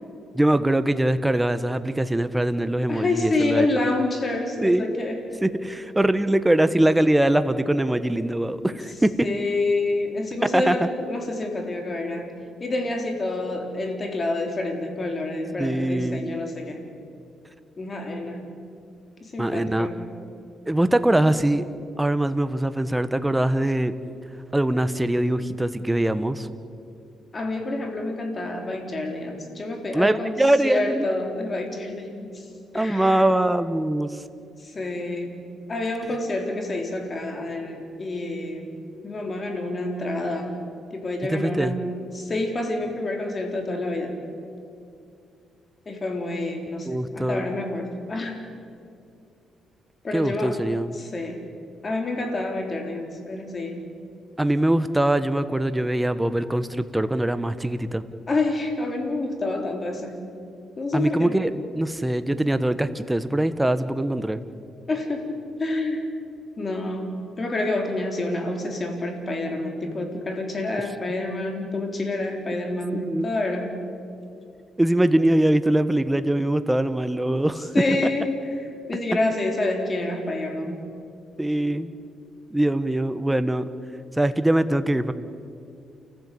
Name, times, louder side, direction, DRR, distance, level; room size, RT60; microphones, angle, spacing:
voice 1, 0.3-3.7 4.6-4.9 5.4-9.3 10.4-10.9 15.6-16.2 19.4-19.9 20.7-21.7 22.0-23.9 24.5-26.5 29.9-31.0 32.7-34.2 41.3-41.7 46.8-47.5 50.1-50.9 54.4-58.0 60.9-64.4 72.9-73.3 74.8-78.0 81.4-81.9 82.5-83.7 84.2-85.1, right 1 dB, 10° right, 12 dB, 1.2 m, -22 dB
voice 2, 2.9-5.2 8.7-8.8 9.2-16.8 17.8-18.5 19.2-20.1 27.3-32.5 32.7-33.3 34.6-35.4 35.7-38.7 39.0-40.6 40.9-44.2 45.9-48.4 50.0-50.6 50.9-51.4 51.8-53.9 58.3-60.2 60.8-61.4 64.9-66.1 66.6-67.1 67.4-73.8 77.6-80.8, left 2 dB, 35° left, 3 dB, 4.1 m, -28 dB
29.0 x 15.0 x 8.5 m, 2.5 s
cardioid pair, 90°, 0 cm